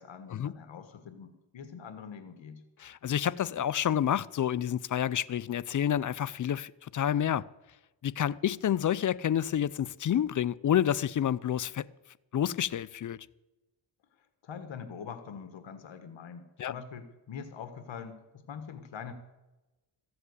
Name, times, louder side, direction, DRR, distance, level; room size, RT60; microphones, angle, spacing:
voice 1, 0.0-2.6 14.4-19.1, left 6 dB, 65° left, 1.6 m, -44 dB
voice 2, 2.8-7.4 8.0-11.8 12.3-13.2 16.6-16.7, left 10 dB, 40° left, 0.5 m, -29 dB
15.0 x 7.8 x 8.1 m
cardioid pair, 90°, 49 cm